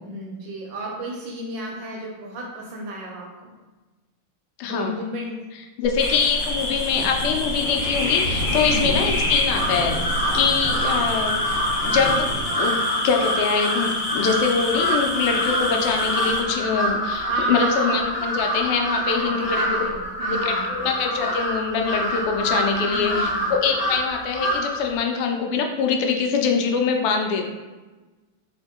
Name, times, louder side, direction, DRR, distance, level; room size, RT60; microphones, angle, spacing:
voice 1, 0.0-3.5 4.7-5.4 8.6-8.9 17.2-18.0 19.0-20.9 22.8-23.6, right 1 dB, 75° right, -2 dB, 1.1 m, -32 dB
voice 2, 4.6-4.9 5.8-10.0 10.3-11.4 11.8-19.6 20.3-27.4, left 5 dB, 90° left, 3 dB, 1.5 m, -24 dB
Livestock farm animals working animals, 5.8-12.5, equal, 25° left, 1.1 m, -30 dB
sound 1, 6.0-16.4, left 2 dB, 70° left, 0.7 m, -28 dB
Crow, 9.5-24.9, equal, 50° left, 1.3 m, -26 dB
3.5 x 2.6 x 3.5 m, 1.2 s
omnidirectional pair, 2.4 m